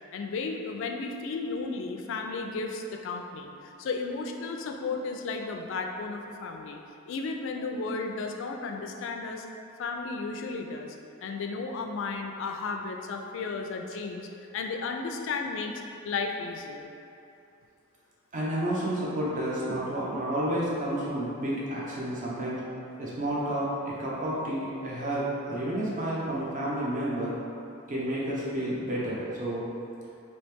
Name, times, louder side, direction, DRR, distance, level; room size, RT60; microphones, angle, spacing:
voice 1, 0.1-6.8 7.1-9.5 9.8-11.0 11.2-14.3 14.5-16.9, left 4 dB, 65° left, 3 dB, 0.3 m, -34 dB
voice 2, 18.3-22.6 23.0-27.4 27.9-29.6, right 1 dB, 40° right, -6 dB, 0.7 m, -30 dB
3.1 x 2.8 x 3.3 m, 2.7 s
head